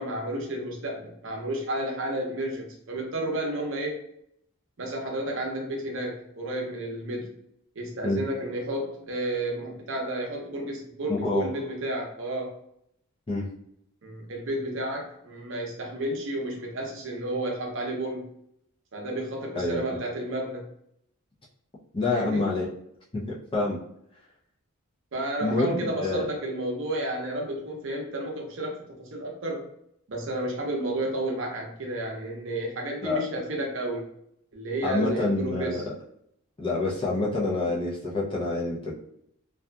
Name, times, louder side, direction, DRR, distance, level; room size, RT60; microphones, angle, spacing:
voice 1, 0.0-4.0 4.8-7.3 7.8-12.6 14.0-18.3 18.9-20.6 22.1-22.5 25.1-29.7 30.1-34.1 34.5-35.8, right 1 dB, 55° right, 0 dB, 0.6 m, -31 dB
voice 2, 11.1-11.5 13.3-13.5 19.5-19.8 21.9-22.7 23.1-23.8 25.4-26.2 33.0-33.2 34.8-35.9 36.6-38.9, left 2 dB, 25° left, -5 dB, 0.5 m, -27 dB
2.7 x 2.3 x 2.3 m, 0.73 s
head